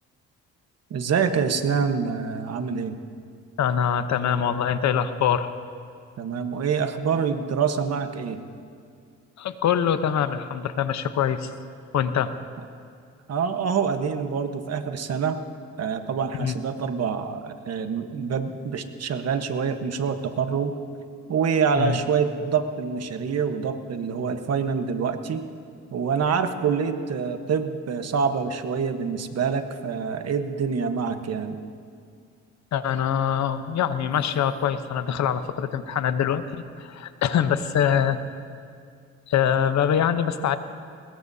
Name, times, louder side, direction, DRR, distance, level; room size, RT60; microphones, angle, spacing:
voice 1, 0.9-3.0 6.2-8.4 13.3-15.4 15.8-20.7 21.3-25.4 25.9-31.6, right 6 dB, 55° right, 8 dB, 1.2 m, -26 dB
voice 2, 3.6-5.5 9.4-11.5 11.9-12.3 16.4-16.6 21.8-22.0 32.7-38.2 39.3-40.6, left 8 dB, 65° left, 11 dB, 0.9 m, -24 dB
22.0 x 20.5 x 2.8 m, 2.3 s
cardioid pair, 90°, 30 cm